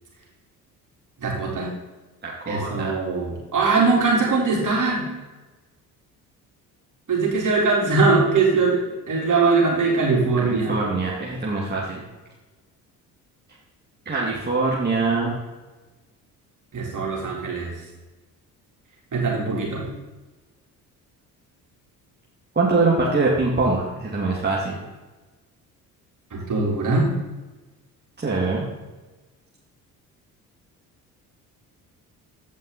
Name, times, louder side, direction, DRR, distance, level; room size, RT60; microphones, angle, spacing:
voice 1, 1.2-1.7 2.5-5.1 7.1-10.7 16.7-17.7 19.1-19.9 26.3-27.1, right 3 dB, 40° right, -3 dB, 3.8 m, -21 dB
voice 2, 2.2-3.0 10.2-12.0 14.1-15.4 22.5-24.8 28.2-28.7, right 3 dB, 20° right, -4 dB, 2.3 m, -23 dB
15.0 x 5.3 x 4.2 m, 1.2 s
hypercardioid pair, 50°, 45 cm